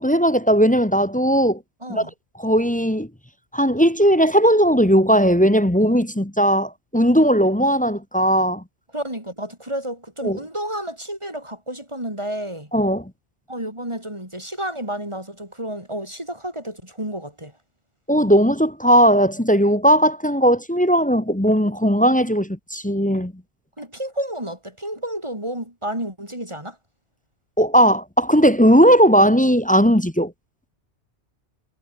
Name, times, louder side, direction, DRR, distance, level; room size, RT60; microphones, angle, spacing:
voice 1, 0.0-1.6 1.9-2.0 2.4-3.1 3.5-8.6 10.2-10.4 12.7-13.0 18.1-23.3 27.6-30.3, equal, 10° left, 0.9 m, -17 dB
voice 2, 1.8-2.1 8.9-12.7 13.5-17.5 23.8-26.8, right 1 dB, 25° right, 6.7 m, -31 dB
omnidirectional pair, 1.1 m